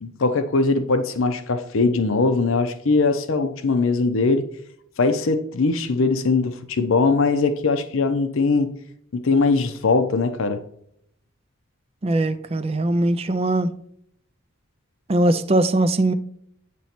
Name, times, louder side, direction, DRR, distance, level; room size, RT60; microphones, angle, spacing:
voice 1, 0.0-4.5 5.0-8.7 9.1-10.6, left 3 dB, 65° left, 0.6 m, -21 dB
voice 2, 12.0-13.7 15.1-16.1, right 1 dB, 25° right, 0.4 m, -20 dB
9.1 x 3.1 x 4.3 m
head